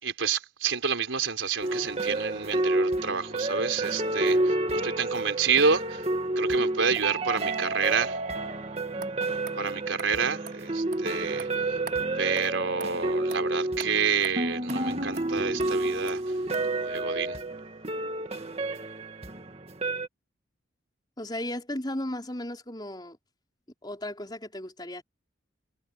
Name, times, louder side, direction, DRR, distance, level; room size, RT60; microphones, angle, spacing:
voice 1, 0.0-6.0 6.4-8.2 9.6-11.8 12.2-16.4 16.7-17.4, right 5 dB, 85° right, 4.2 m, -29 dB
sound 1, 1.6-20.1, right 2 dB, 30° right, 2.1 m, -30 dB
sound 2, 9.0-9.1 9.5-9.6 10.0-10.1 10.5-10.6 10.9-11.0 11.4-11.5 11.9-12.0 12.4-12.5 12.8-12.9 13.3-13.4 13.8-13.9 14.2-14.3 14.7-14.8 15.2-15.3 15.6-15.7 16.1-16.2 16.5-16.6, right 5 dB, 50° right, 5.4 m, -42 dB
voice 2, 21.2-23.2 23.8-25.0, left 1 dB, 20° left, 4.9 m, -35 dB
head